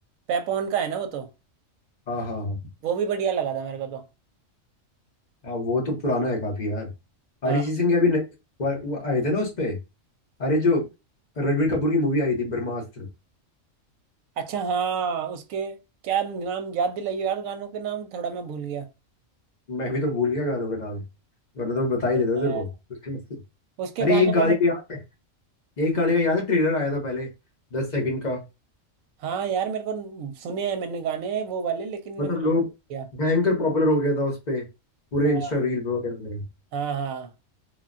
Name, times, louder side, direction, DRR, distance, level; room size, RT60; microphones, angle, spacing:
voice 1, 0.3-1.3 2.8-4.0 7.4-7.6 14.4-15.8 16.0-18.9 22.4-22.6 23.8-24.5 29.2-32.4 32.9-33.0 35.2-35.5 36.7-37.3, right 7 dB, 85° right, 1.0 m, -28 dB
voice 2, 2.1-2.6 5.4-6.9 7.4-8.2 8.6-9.8 10.4-10.9 11.4-13.1 19.7-21.0 21.5-22.7 23.0-23.2 24.0-25.0 25.8-27.3 27.7-28.4 32.2-32.7 33.1-34.6 35.1-36.4, left 2 dB, 35° left, 1.0 m, -24 dB
3.3 x 2.2 x 2.5 m
omnidirectional pair, 1.4 m